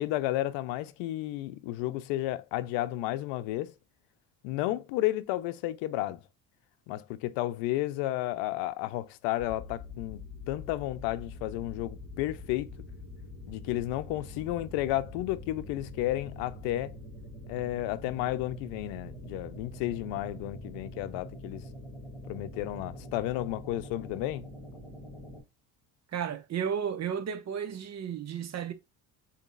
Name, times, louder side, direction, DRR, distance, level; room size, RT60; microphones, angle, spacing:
voice 1, 0.0-3.7 4.4-6.2 6.9-10.2 10.5-12.8 13.5-17.0 17.5-21.6 22.3-24.5, left 15 dB, 80° left, 0.6 m, -32 dB
sound 1, 9.4-25.4, left 1 dB, ahead, 2.2 m, -45 dB
voice 2, 26.1-28.7, right 8 dB, 40° right, 0.8 m, -33 dB
3.9 x 2.9 x 2.4 m
supercardioid pair, 90°, 42 cm